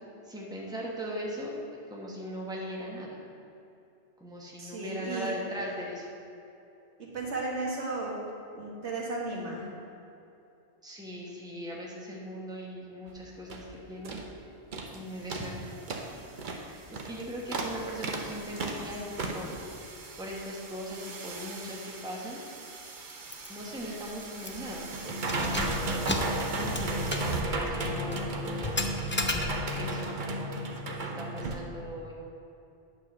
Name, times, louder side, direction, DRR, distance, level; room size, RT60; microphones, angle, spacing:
voice 1, 0.2-3.2 4.2-6.1 10.8-14.2 14.9-15.8 16.6-19.6 20.2-22.4 23.5-25.6 26.5-28.8 29.3-32.1, equal, 5° right, -3 dB, 1.2 m, -39 dB
voice 2, 4.6-5.3 7.0-8.1 8.5-9.7, right 3 dB, 90° right, -4 dB, 1.9 m, -34 dB
sound 1, 13.1-13.2 13.5-13.7 14.0-14.3 14.7-15.0 15.3-31.6, right 2 dB, 50° right, 0.9 m, -35 dB
Keys jangling, 23.3-23.5 23.8-23.9 24.4-24.7 25.2-29.9, left 2 dB, 20° left, 0.3 m, -34 dB
9.1 x 4.6 x 6.6 m, 2.7 s
omnidirectional pair, 1.1 m